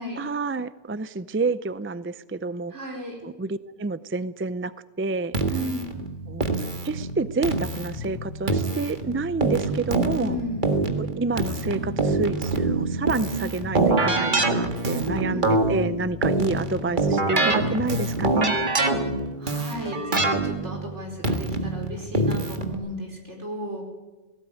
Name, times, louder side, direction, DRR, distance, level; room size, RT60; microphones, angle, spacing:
voice 1, 0.2-2.7 3.2-4.7 5.0-5.3 6.3-6.5 6.8-10.4 11.0-18.6, right 3 dB, 20° right, 15 dB, 0.4 m, -28 dB
voice 2, 2.7-3.2 5.5-5.9 10.1-10.7 13.2-13.6 15.3-15.6 18.9-19.0 19.4-23.8, equal, 80° right, 1 dB, 5.2 m, -34 dB
Keyboard (musical), 5.3-22.7, right 2 dB, 45° right, 1.9 m, -25 dB
18.5 x 17.0 x 9.2 m, 1.1 s
omnidirectional pair, 1.2 m